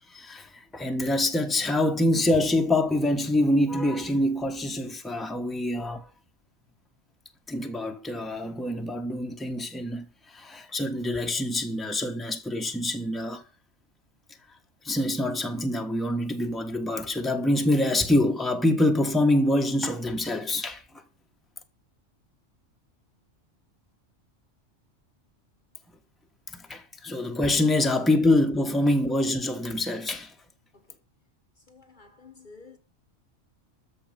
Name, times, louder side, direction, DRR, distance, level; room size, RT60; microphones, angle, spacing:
voice 1, 0.1-6.1 7.5-13.4 14.8-21.0 26.5-30.3, left 1 dB, ahead, 1.3 m, -25 dB
voice 2, 31.7-32.8, left 4 dB, 40° left, 1.4 m, -50 dB
13.5 x 5.1 x 9.1 m
omnidirectional pair, 1.3 m